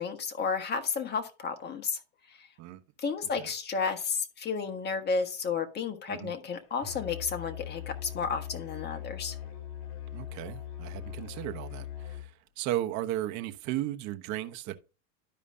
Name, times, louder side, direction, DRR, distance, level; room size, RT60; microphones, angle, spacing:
voice 1, 0.0-2.0 2.4-2.5 3.0-9.4, left 5 dB, 25° left, 1.5 m, -32 dB
Musical instrument, 6.8-12.3, left 10 dB, 55° left, 2.4 m, -40 dB
voice 2, 10.1-14.7, right 14 dB, 45° right, 1.1 m, -35 dB
12.5 x 5.0 x 2.7 m
supercardioid pair, 130°, 39 cm